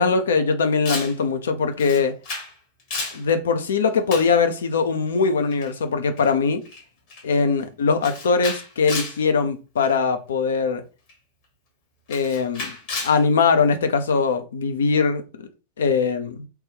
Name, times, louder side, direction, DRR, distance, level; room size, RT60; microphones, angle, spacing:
voice 1, 0.0-2.2 3.1-6.6 7.2-10.8 12.1-12.7 13.0-15.5 15.8-16.4, left 5 dB, 65° left, 0.5 m, -21 dB
Camera, 0.9-1.2 1.8-2.5 2.8-3.2 4.1-4.4 5.5-5.7 6.2-6.3 6.7-6.8 7.1-7.4 8.0-9.2 9.8-10.0 11.1-11.2 12.1-13.2, left 3 dB, 45° left, 1.2 m, -32 dB
2.9 x 2.3 x 3.2 m
figure-of-eight pair, 90°, 0 cm